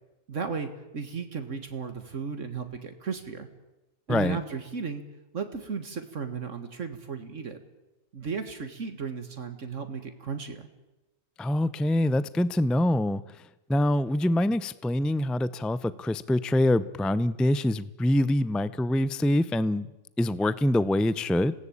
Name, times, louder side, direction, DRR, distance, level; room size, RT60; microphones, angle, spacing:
voice 1, 0.3-3.5 4.1-5.0 5.3-7.6 8.1-10.7, right 5 dB, 65° right, 8 dB, 2.0 m, -35 dB
voice 2, 11.4-13.2 13.7-19.9 20.2-21.5, left 1 dB, ahead, 16 dB, 0.3 m, -25 dB
27.0 x 18.0 x 8.6 m, 1.0 s
omnidirectional pair, 1.4 m